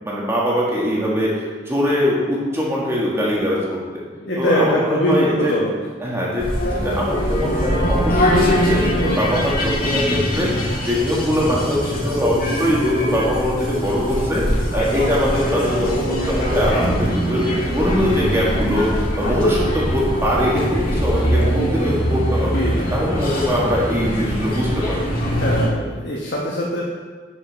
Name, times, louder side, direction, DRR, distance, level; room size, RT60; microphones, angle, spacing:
voice 1, 0.0-4.0 4.4-5.5 6.0-22.6 22.9-25.0, equal, 15° right, -5 dB, 1.6 m, -22 dB
voice 2, 4.2-5.7 22.5-22.9 25.4-26.8, equal, 75° left, -4 dB, 1.2 m, -22 dB
sound 1, 6.4-25.7, equal, 50° left, 1.6 m, -22 dB
11.0 x 5.6 x 4.0 m, 1.5 s
head